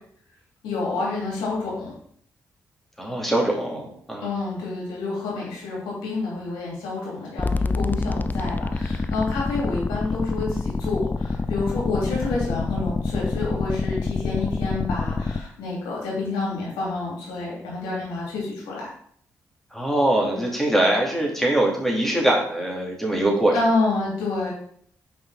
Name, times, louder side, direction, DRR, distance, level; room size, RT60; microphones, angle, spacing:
voice 1, 0.6-1.9 4.2-18.9 23.5-24.5, left 3 dB, 90° left, -4 dB, 2.8 m, -28 dB
voice 2, 3.0-4.3 19.7-23.5, right 1 dB, 5° left, -2 dB, 2.7 m, -22 dB
sound 1, 7.4-15.4, left 3 dB, 25° left, 0.5 m, -26 dB
5.5 x 5.3 x 4.1 m, 0.63 s
supercardioid pair, 50°, 7 cm